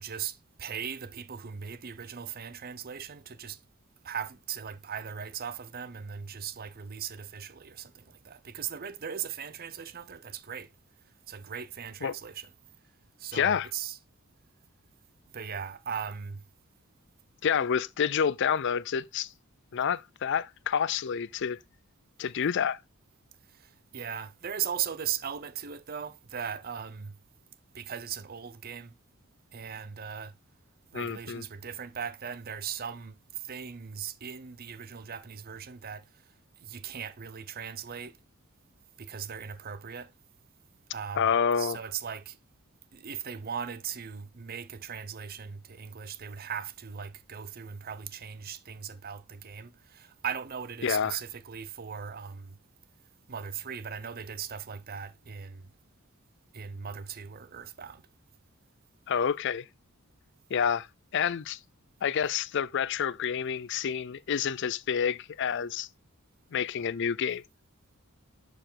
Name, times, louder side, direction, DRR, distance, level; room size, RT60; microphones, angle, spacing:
voice 1, 0.0-3.6 4.0-10.7 11.3-12.5 13.2-14.0 15.3-16.4 23.5-27.2 27.7-28.9 29.5-30.3 30.9-36.1 36.6-38.2 39.0-40.1 40.9-41.3 41.6-42.4 42.9-52.6 53.3-55.7 56.5-58.0, right 8 dB, 45° right, 0.6 m, -38 dB
voice 2, 13.3-13.7 17.4-19.3 19.7-21.6 22.2-22.8 30.9-31.4 41.2-41.8 50.8-51.2 59.1-59.6 60.5-60.9 61.1-61.6 62.0-65.9 66.5-67.4, left 7 dB, 55° left, 0.4 m, -28 dB
11.0 x 4.9 x 3.8 m
head